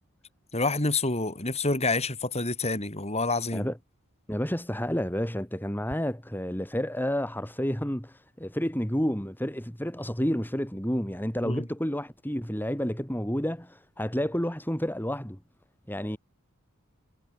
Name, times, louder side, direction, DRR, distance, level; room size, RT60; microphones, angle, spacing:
voice 1, 0.5-3.7 11.4-11.7, left 3 dB, 30° left, 4.0 m, -28 dB
voice 2, 4.3-15.4 15.9-16.2, equal, 10° left, 3.6 m, -30 dB
head